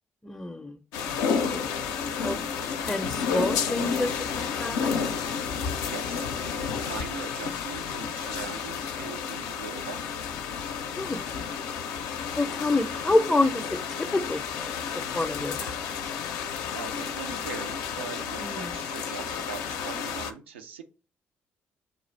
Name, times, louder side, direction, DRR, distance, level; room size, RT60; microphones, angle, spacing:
voice 1, 0.2-0.8 1.0-1.8 2.1-2.4 2.8-5.2 10.9-11.2 12.3-15.9 18.4-18.7, left 2 dB, 15° left, 6 dB, 0.5 m, -29 dB
sound 1, 0.9-20.3, left 6 dB, 65° left, 0.4 m, -31 dB
voice 2, 5.8-10.3 16.7-20.8, right 6 dB, 85° right, 7 dB, 0.4 m, -41 dB
6.6 x 2.4 x 3.1 m, 0.36 s
figure-of-eight pair, 45°, 6 cm